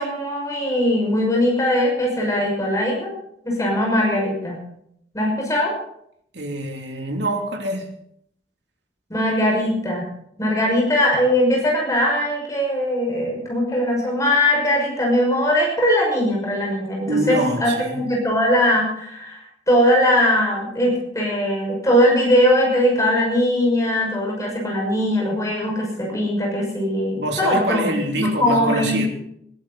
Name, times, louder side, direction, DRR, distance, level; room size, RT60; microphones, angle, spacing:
voice 1, 0.0-3.1 3.4-4.6 5.1-5.7 9.1-10.1 10.4-19.4 19.7-29.0, equal, 20° left, -2 dB, 6.0 m, -20 dB
voice 2, 6.3-7.9 17.1-18.0 27.2-29.1, right 1 dB, 75° right, 3 dB, 2.9 m, -25 dB
21.0 x 12.5 x 4.2 m, 0.71 s
head